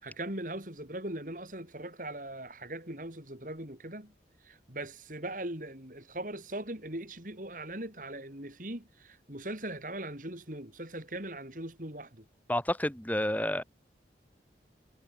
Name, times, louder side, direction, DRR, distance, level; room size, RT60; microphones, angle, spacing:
voice 1, 0.0-4.1 4.4-12.2, right 1 dB, 50° right, 4.7 m, -40 dB
voice 2, 12.5-13.6, left 1 dB, 10° left, 4.5 m, -29 dB
head